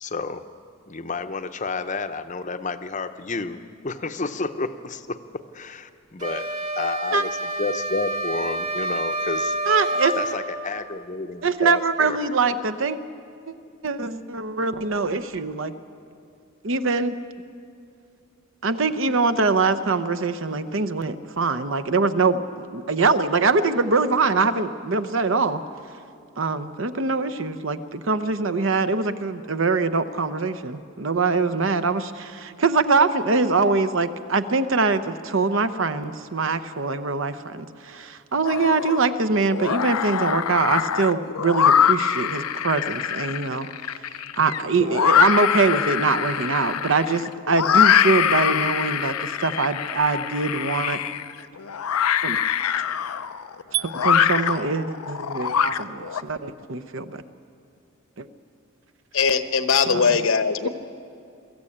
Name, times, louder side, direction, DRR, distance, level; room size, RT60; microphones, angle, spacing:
voice 1, 0.0-0.4 0.9-6.5 6.8-7.3 7.6-9.5 10.2-12.2, left 3 dB, 35° left, 9 dB, 0.7 m, -30 dB
sound 1, 6.2-10.4, right 1 dB, 35° right, 2.0 m, -28 dB
voice 2, 9.6-10.2 11.4-13.0 13.5-13.6 13.8-15.7 16.6-17.1 18.6-25.6 26.4-44.0 44.4-51.0 52.2-52.4 53.7-57.2 58.2-58.3 59.9-60.2, right 4 dB, 60° right, 11 dB, 0.8 m, -23 dB
sound 2, 38.4-39.1 39.5-56.2, left 8 dB, 80° left, 0.5 m, -23 dB
voice 3, 59.1-60.7, left 5 dB, 65° left, 10 dB, 1.0 m, -20 dB
23.0 x 14.0 x 8.7 m, 2.4 s
head